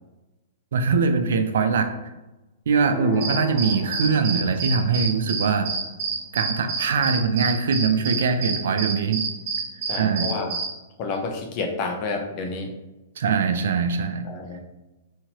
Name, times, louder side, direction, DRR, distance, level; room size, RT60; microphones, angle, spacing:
voice 1, 0.7-1.9 2.7-5.7 6.3-9.2 9.9-10.3 13.2-14.2, right 5 dB, 75° right, 8 dB, 0.4 m, -22 dB
sound 1, 2.8-4.9, left 5 dB, 15° left, 1.4 m, -35 dB
sound 2, 3.2-10.7, right 4 dB, 50° right, 0.8 m, -28 dB
voice 2, 9.9-10.5 11.0-12.7 14.2-14.6, left 3 dB, 40° left, 3 dB, 0.7 m, -29 dB
4.3 x 2.8 x 2.9 m, 1.1 s
hypercardioid pair, 140°, 0 cm